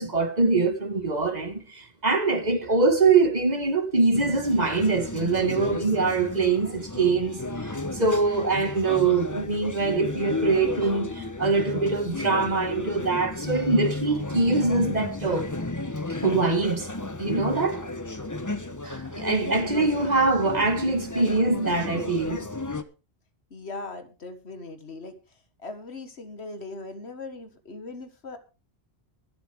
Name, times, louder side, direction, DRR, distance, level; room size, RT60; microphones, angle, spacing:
voice 1, 0.0-15.5 16.2-16.9 17.2-17.9 18.8-22.5, right 3 dB, 40° right, 2.0 m, -23 dB
sound 1, 4.1-22.8, left 2 dB, 20° left, 1.0 m, -33 dB
voice 2, 23.5-25.1 25.6-28.4, left 2 dB, 75° left, 1.9 m, -39 dB
23.5 x 8.0 x 3.5 m
omnidirectional pair, 1.1 m